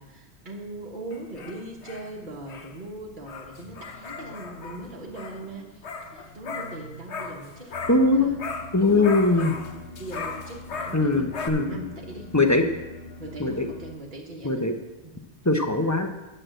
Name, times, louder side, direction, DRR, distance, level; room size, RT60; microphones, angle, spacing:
voice 1, 0.0-8.4 8.8-9.6 10.0-11.3 11.7-12.3 12.6-12.7 13.2-14.7 15.0-15.2 15.8-16.0, right 2 dB, 45° right, -3 dB, 1.4 m, -40 dB
sound 1, 1.1-8.1 8.4-11.5, left 4 dB, 80° left, 1.3 m, -38 dB
sound 2, 7.7-13.9, left 3 dB, 45° left, 3.5 m, -43 dB
voice 2, 7.9-8.3 8.7-9.5 10.9-11.8 12.3-12.6 13.4-13.7 14.4-14.8 15.4-16.1, left 2 dB, 15° left, 5 dB, 0.8 m, -21 dB
10.5 x 6.6 x 7.6 m, 1.0 s
omnidirectional pair, 1.1 m